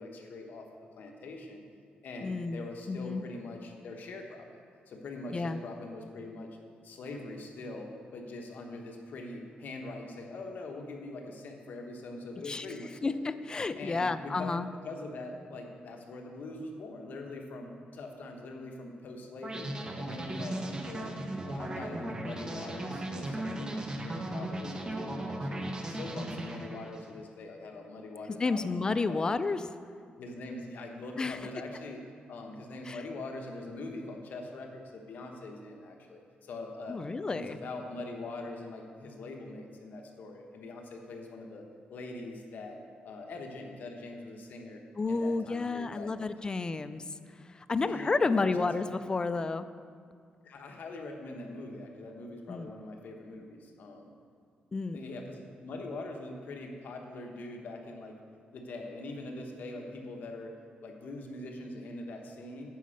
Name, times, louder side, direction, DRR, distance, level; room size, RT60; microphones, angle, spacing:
voice 1, 0.0-1.6 2.0-4.5 4.9-6.6 6.8-13.2 13.8-21.1 21.4-29.2 30.2-32.0 32.3-37.0 37.3-41.6 41.9-42.8 43.0-44.8 45.1-46.1 47.8-48.9 50.4-54.1 54.9-58.2 58.5-62.8, left 2 dB, 65° left, 2 dB, 1.2 m, -43 dB
voice 2, 2.2-3.2 5.3-5.6 12.5-12.7 13.0-14.7 28.4-29.6 31.2-31.4 32.9-33.0 36.9-37.6 45.0-47.0 47.5-49.7 52.5-52.7 54.7-55.0, left 3 dB, 25° left, 12 dB, 0.4 m, -31 dB
sound 1, 19.4-27.1, right 1 dB, 25° right, 0.9 m, -37 dB
9.2 x 5.2 x 6.5 m, 2.2 s
cardioid pair, 115°, 3 cm